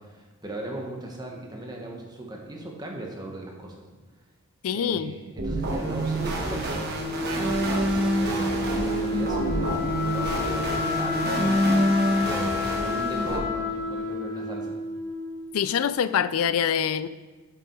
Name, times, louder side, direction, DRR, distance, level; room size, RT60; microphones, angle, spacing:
voice 1, 0.0-3.9 4.7-11.2 11.6-14.8, right 1 dB, 20° right, 0 dB, 1.3 m, -38 dB
voice 2, 4.6-5.1 15.5-17.1, left 8 dB, 70° left, 15 dB, 0.3 m, -25 dB
sound 1, 5.4-13.4, equal, 45° right, 1.4 m, -26 dB
Wind instrument woodwind instrument, 6.9-15.6, left 3 dB, 40° left, 2.6 m, -30 dB
7.1 x 7.1 x 4.6 m, 1.3 s
head